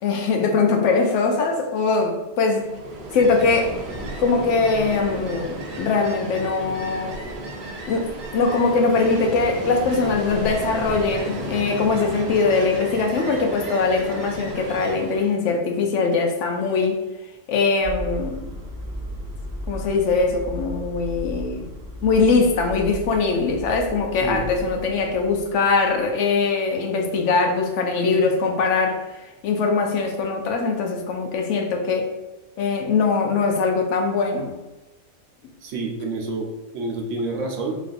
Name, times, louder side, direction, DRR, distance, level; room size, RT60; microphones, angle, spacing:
voice 1, 0.0-2.7 3.1-3.8 4.2-7.3 7.9-8.1 8.3-17.0 17.5-18.4 19.7-21.7 22.0-32.1 32.6-34.5, left 4 dB, 75° left, 3 dB, 1.0 m, -21 dB
Ocean, 2.6-15.4, right 1 dB, 50° right, 0.7 m, -33 dB
sound 1, 17.8-26.1, equal, 5° right, 1.3 m, -35 dB
voice 2, 35.6-37.8, right 2 dB, 80° right, 1 dB, 1.1 m, -28 dB
4.1 x 3.1 x 2.5 m, 1.1 s
omnidirectional pair, 1.3 m